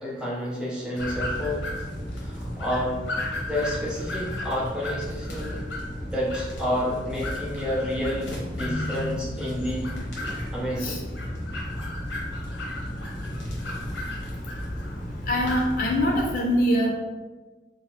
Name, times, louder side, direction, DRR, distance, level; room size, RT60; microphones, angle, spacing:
voice 1, 0.0-1.6 2.2-3.0 3.5-5.6 6.0-9.9 10.5-11.1, equal, 5° right, -6 dB, 0.6 m, -29 dB
sound 1, 1.0-16.3, left 1 dB, 90° left, 0.7 m, -33 dB
voice 2, 15.3-16.9, equal, 50° left, 0 dB, 0.3 m, -23 dB
2.8 x 2.0 x 2.9 m, 1.3 s
head